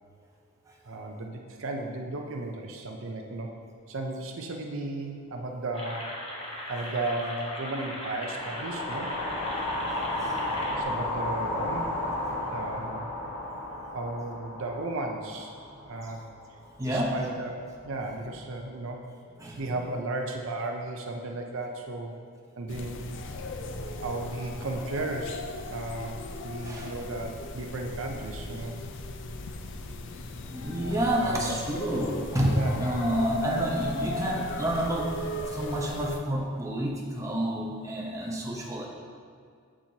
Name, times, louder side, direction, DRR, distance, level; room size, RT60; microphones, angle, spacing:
voice 1, 0.8-3.6 3.9-6.1 6.7-9.1 10.7-11.9 12.3-13.1 13.9-15.5 15.9-16.2 16.8-19.0 19.6-22.1 22.6-23.0 24.0-25.4 25.7-28.8 31.2-31.6 32.5-32.8, right 2 dB, 65° right, 2 dB, 0.6 m, -35 dB
sound 1, 5.7-10.8, left 1 dB, 25° left, 1.0 m, -38 dB
sound 2, 8.2-16.5, left 1 dB, 80° left, 1.4 m, -33 dB
voice 2, 16.8-17.2 19.4-19.6 26.6-26.9 30.5-35.1 35.5-38.9, right 1 dB, 15° right, -3 dB, 0.8 m, -29 dB
sound 3, 22.7-36.2, left 2 dB, 55° left, 0.4 m, -37 dB
7.4 x 7.3 x 2.8 m, 2.2 s
head